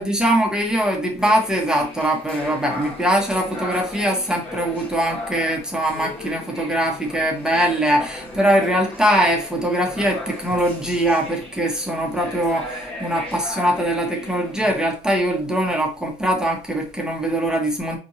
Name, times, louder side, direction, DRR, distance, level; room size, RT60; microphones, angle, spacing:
voice 1, 0.0-18.0, right 1 dB, 5° right, 0.8 m, -22 dB
sound 1, 1.2-14.9, left 1 dB, 35° left, 1.4 m, -36 dB
4.2 x 2.8 x 2.8 m
cardioid pair, 125°, 17 cm